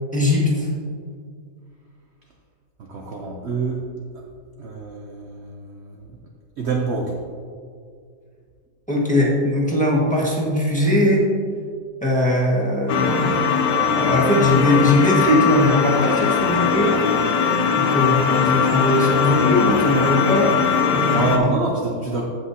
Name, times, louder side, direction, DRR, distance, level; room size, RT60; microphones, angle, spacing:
voice 1, 0.1-0.7 8.9-11.3 12.0-13.5 13.9-17.0 17.7-20.5 20.9-21.5, left 1 dB, 5° left, -5 dB, 1.5 m, -20 dB
voice 2, 2.8-3.8 4.1-4.2 4.6-6.2 6.6-7.2 21.1-22.3, right 3 dB, 50° right, 0 dB, 0.9 m, -26 dB
sound 1, 12.9-21.4, left 6 dB, 85° left, 1.3 m, -20 dB
15.5 x 6.0 x 2.8 m, 2.1 s
omnidirectional pair, 1.8 m